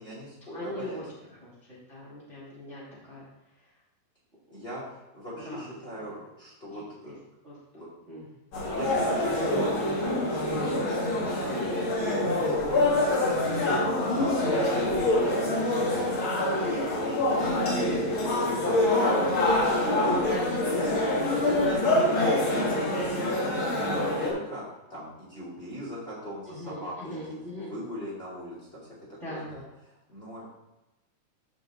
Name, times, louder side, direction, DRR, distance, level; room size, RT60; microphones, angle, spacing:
voice 1, 0.0-1.3 4.5-7.2 7.7-7.9 8.7-9.7 10.0-10.3 12.0-15.8 16.4-17.5 17.9-20.5 20.7-20.9 21.3-21.8 22.0-24.6 24.9-28.9 29.3-29.6 30.1-30.4, equal, 15° left, -7 dB, 2.6 m, -40 dB
voice 2, 0.5-1.0 1.4-2.8 3.1-3.2 3.6-3.7 5.4-5.6 6.0-6.1 6.7-7.1 7.4-7.6 8.1-8.3 8.8-9.9 11.3-11.8 16.3-16.7 20.3-21.0 21.4-21.8 26.5-27.7 29.2-29.5, left 1 dB, 20° right, -9 dB, 2.1 m, -40 dB
sound 1, 8.5-24.3, left 1 dB, 40° left, 2.1 m, -25 dB
13.5 x 5.2 x 3.8 m, 0.99 s
omnidirectional pair, 4.4 m